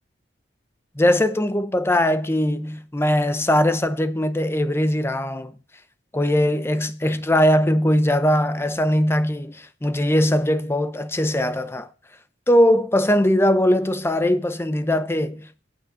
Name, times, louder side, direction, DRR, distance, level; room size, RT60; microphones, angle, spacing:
voice 1, 1.0-5.5 6.1-11.9 12.5-15.6, left 1 dB, 15° left, 0.7 m, -20 dB
9.0 x 7.6 x 6.7 m
head